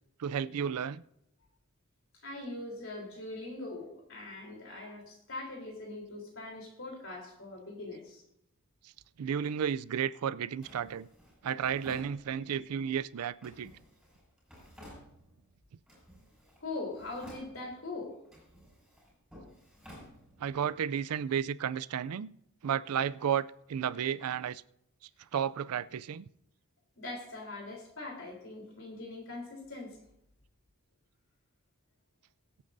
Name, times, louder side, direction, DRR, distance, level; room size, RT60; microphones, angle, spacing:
voice 1, 0.2-1.0 9.2-11.1 11.4-13.7 20.4-22.3 22.6-24.6 25.3-26.3, right 8 dB, 85° right, 0.4 m, -32 dB
voice 2, 2.2-8.2 16.6-18.2 27.0-30.0, left 2 dB, 60° left, 3.6 m, -42 dB
Drawer open or close, 10.6-12.7 13.4-15.5 15.9-16.6 16.9-17.9 18.2-20.7, equal, ahead, 5.7 m, -54 dB
22.5 x 8.5 x 2.6 m
head